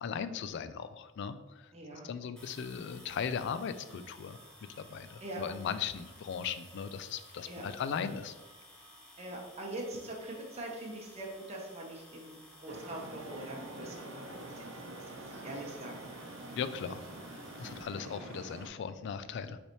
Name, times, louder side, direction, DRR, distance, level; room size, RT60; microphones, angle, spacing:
voice 1, 0.0-4.4 4.8-8.3 16.6-17.0 17.3-19.6, left 7 dB, 60° left, 12 dB, 0.3 m, -38 dB
voice 2, 1.7-2.1 5.2-5.4 7.5-7.6 9.2-15.9, right 1 dB, 30° right, -1 dB, 0.8 m, -43 dB
sound 1, 2.4-17.8, left 1 dB, 5° left, 0.8 m, -56 dB
Traffic noise roadway noise, 12.7-18.7, right 2 dB, 75° right, 0.7 m, -46 dB
5.4 x 3.3 x 3.0 m, 1.1 s
head